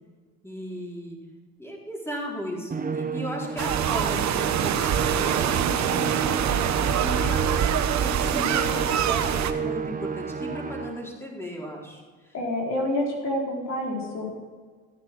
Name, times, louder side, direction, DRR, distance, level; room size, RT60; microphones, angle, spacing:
voice 1, 0.4-1.2 1.6-7.7 8.0-12.0, equal, 5° left, -2 dB, 4.7 m, -35 dB
Musical instrument, 2.7-11.2, right 5 dB, 25° right, 1.1 m, -32 dB
sound 1, 3.6-9.5, right 9 dB, 55° right, 1.2 m, -25 dB
voice 2, 12.3-14.3, left 1 dB, 55° left, -2 dB, 4.2 m, -28 dB
15.5 x 9.3 x 6.3 m, 1.5 s
supercardioid pair, 80°, 33 cm